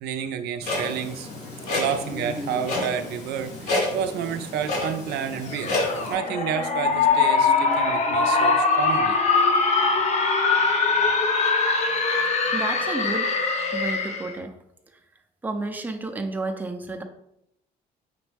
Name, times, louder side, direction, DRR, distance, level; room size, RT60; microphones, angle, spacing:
voice 1, 0.0-1.3 1.7-5.8 6.0-9.2, right 8 dB, 75° right, 8 dB, 0.4 m, -30 dB
Clock, 0.6-6.1, left 2 dB, 80° left, 1.8 m, -30 dB
sound 1, 5.5-14.3, left 4 dB, 40° left, 0.7 m, -22 dB
voice 2, 12.5-13.3 13.7-14.5 15.4-17.0, right 2 dB, 10° right, 4 dB, 0.5 m, -31 dB
5.1 x 3.0 x 3.4 m, 0.78 s
cardioid pair, 110°, 17 cm